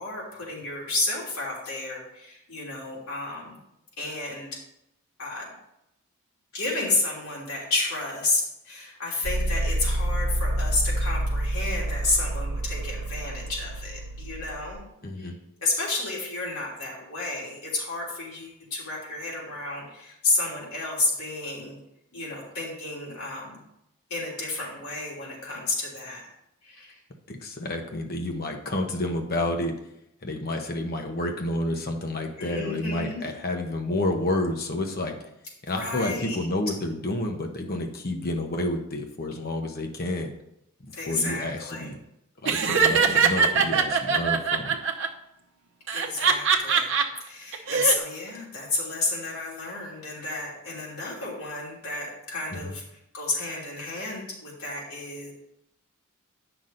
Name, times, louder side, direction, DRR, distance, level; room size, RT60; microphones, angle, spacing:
voice 1, 0.0-3.6 4.0-4.5 5.2-5.4 6.5-14.9 15.2-15.3 15.6-21.8 22.1-23.6 24.1-26.3 26.6-27.0 32.4-33.3 35.7-36.4 40.9-41.9 45.9-52.8 53.1-55.3, left 2 dB, 85° left, -4 dB, 3.1 m, -31 dB
sound 1, 9.2-14.7, right 1 dB, 85° right, 1.0 m, -28 dB
voice 2, 15.0-15.4 27.3-29.7 30.2-35.3 35.7-40.3 40.8-42.0 42.4-44.8 52.5-52.7, left 1 dB, 45° left, 3 dB, 1.0 m, -30 dB
Laughter, 42.4-45.1 45.9-47.0 47.5-47.9, right 5 dB, 60° right, 0.8 m, -22 dB
9.1 x 6.0 x 3.9 m, 0.82 s
head